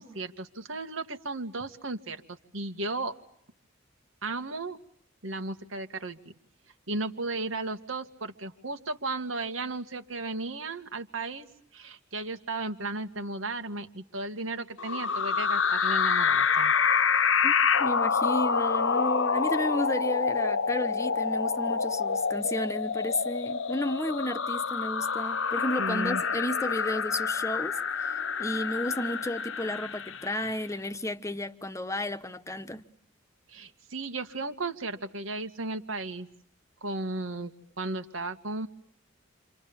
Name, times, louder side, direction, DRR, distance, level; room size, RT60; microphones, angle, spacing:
voice 1, 0.0-3.2 4.2-4.8 5.2-6.3 6.9-11.5 11.7-16.7 25.8-26.2 33.5-36.3 36.8-37.5 37.8-38.7, right 2 dB, 85° right, 2.3 m, -35 dB
sound 1, 14.8-30.5, left 6 dB, 75° left, 1.0 m, -27 dB
voice 2, 17.8-32.8, left 1 dB, 15° left, 1.2 m, -32 dB
29.5 x 27.5 x 7.1 m
head